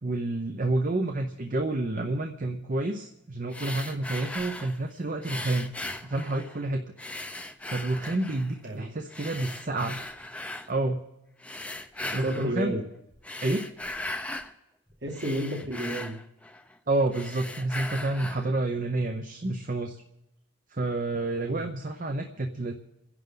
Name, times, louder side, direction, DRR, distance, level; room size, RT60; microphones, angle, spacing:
voice 1, 0.0-5.7 6.0-6.9 7.7-10.0 10.7-11.0 12.1-12.7 13.4-13.6 16.9-20.0 20.7-22.7, right 2 dB, 40° right, 5 dB, 0.8 m, -29 dB
sound 1, 3.5-4.8 5.2-6.6 7.0-8.5 9.1-10.7 11.4-12.5 13.1-14.5 14.9-16.8 17.1-18.5, left 1 dB, 5° left, 0.6 m, -38 dB
voice 2, 12.2-12.8 15.0-16.1 21.4-21.7, right 1 dB, 55° right, 2 dB, 2.2 m, -31 dB
29.0 x 11.0 x 3.9 m, 0.88 s
head